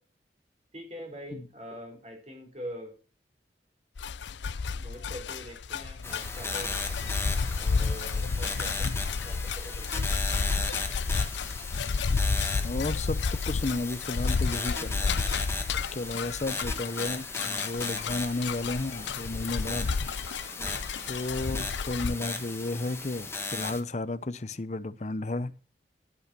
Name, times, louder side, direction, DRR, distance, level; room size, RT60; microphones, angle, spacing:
voice 1, 0.7-2.9 4.8-6.7 7.6-8.9 9.2-10.1 19.5-19.8 20.6-20.8, equal, 35° right, 3.8 m, -43 dB
sound 1, 4.0-22.1, left 4 dB, 80° left, 0.5 m, -31 dB
sound 2, 6.0-23.8, left 3 dB, 15° left, 1.3 m, -36 dB
voice 2, 12.6-13.2 13.5-15.2 15.9-19.9 21.1-25.5, left 2 dB, 40° left, 0.6 m, -33 dB
11.5 x 8.4 x 6.0 m
head